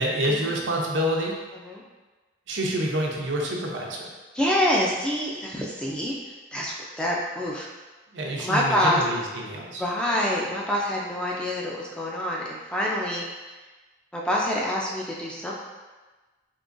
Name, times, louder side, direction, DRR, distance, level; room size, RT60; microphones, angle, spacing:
voice 1, 0.0-1.4 2.5-4.1 8.1-9.8, right 1 dB, 80° right, -1 dB, 0.6 m, -27 dB
voice 2, 4.3-7.7 8.4-9.0 9.8-13.2 14.1-15.5, left 1 dB, 5° left, -4 dB, 0.3 m, -26 dB
3.7 x 2.9 x 2.5 m, 1.2 s
head